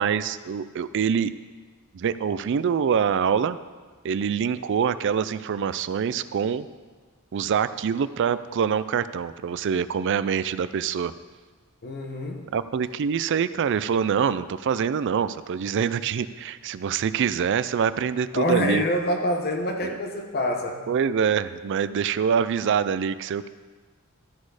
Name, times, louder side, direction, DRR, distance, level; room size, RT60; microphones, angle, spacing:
voice 1, 0.0-1.3 1.9-3.6 4.0-6.7 7.3-11.1 12.5-18.8 19.8-20.0 20.9-23.5, right 7 dB, 55° right, 15 dB, 0.4 m, -25 dB
voice 2, 11.8-12.5 18.3-20.9, left 1 dB, 45° left, 4 dB, 0.9 m, -26 dB
13.0 x 6.3 x 4.8 m, 1.4 s
head